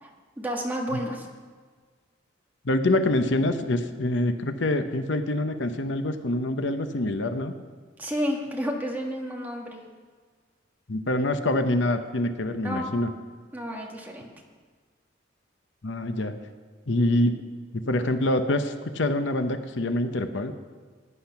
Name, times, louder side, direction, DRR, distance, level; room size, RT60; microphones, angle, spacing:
voice 1, 0.0-1.3 8.0-9.8 12.6-12.9 13.5-14.3, equal, 10° right, -1 dB, 1.7 m, -31 dB
voice 2, 2.6-7.5 10.9-13.1 15.8-16.3 16.9-17.4 17.7-20.5, left 1 dB, 65° left, 8 dB, 0.8 m, -25 dB
16.5 x 10.5 x 5.8 m, 1.5 s
head